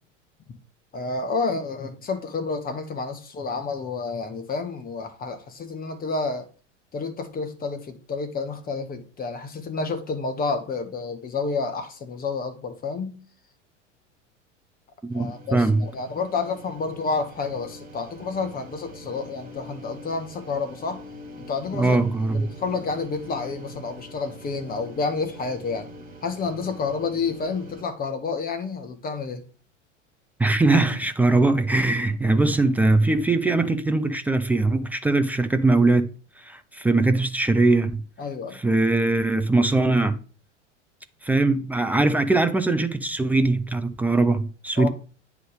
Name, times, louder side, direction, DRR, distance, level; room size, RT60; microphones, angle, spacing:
voice 1, 0.9-6.5 6.9-13.2 15.1-21.0 21.4-22.0 22.3-25.9 26.2-29.4 38.2-38.6 44.8-44.9, left 4 dB, 25° left, 1.5 m, -29 dB
voice 2, 15.0-15.9 21.7-22.5 30.4-36.1 36.4-38.0 38.5-40.2 41.2-44.9, right 2 dB, 5° right, 0.3 m, -21 dB
sound 1, 15.1-27.8, equal, 25° right, 2.3 m, -44 dB
9.1 x 3.6 x 6.5 m
figure-of-eight pair, 80°, 37 cm